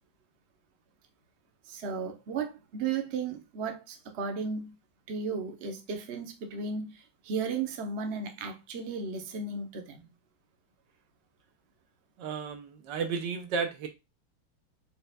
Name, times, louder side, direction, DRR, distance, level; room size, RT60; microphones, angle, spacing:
voice 1, 1.7-4.7 5.1-10.1, right 5 dB, 50° right, 0.8 m, -35 dB
voice 2, 12.2-13.9, right 5 dB, 70° right, 1.2 m, -33 dB
5.2 x 4.4 x 2.2 m
omnidirectional pair, 2.2 m